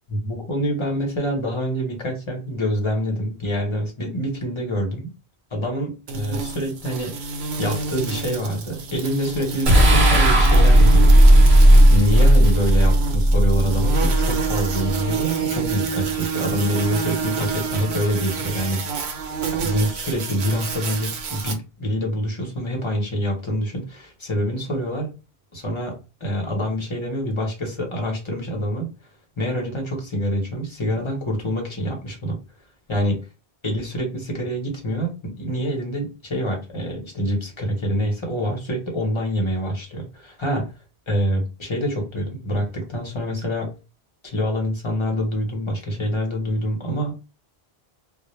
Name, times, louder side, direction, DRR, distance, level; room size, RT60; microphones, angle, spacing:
voice 1, 0.1-5.1 5.5-11.1 11.9-19.1 19.5-25.1 25.5-28.9 29.4-32.4 32.9-33.2 33.6-40.7 41.1-43.7 44.2-47.1, equal, 30° left, 0 dB, 0.8 m, -26 dB
sound 1, 6.1-21.5, right 4 dB, 85° right, 0.9 m, -28 dB
sound 2, 9.7-15.0, right 1 dB, 55° right, 0.8 m, -14 dB
2.1 x 2.1 x 3.0 m, 0.30 s
omnidirectional pair, 1.1 m